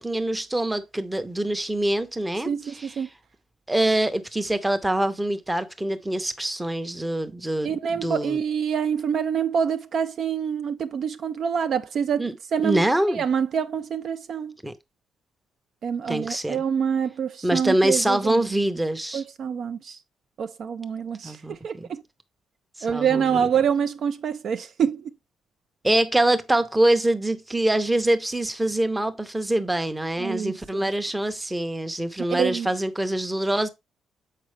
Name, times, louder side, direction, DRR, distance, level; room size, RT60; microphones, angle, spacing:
voice 1, 0.0-2.9 3.7-8.4 12.2-12.3 12.6-13.2 14.6-14.7 16.1-16.6 17.4-19.2 21.2-21.6 22.8-23.5 25.8-33.7, right 1 dB, 5° right, 0.6 m, -24 dB
voice 2, 2.5-3.1 7.6-12.2 12.5-12.9 13.1-14.5 15.8-18.4 19.1-20.0 20.4-22.0 22.8-25.1 30.2-30.9 32.3-32.7, right 7 dB, 45° right, 0.3 m, -26 dB
7.4 x 4.8 x 3.1 m
cardioid pair, 165°, 0 cm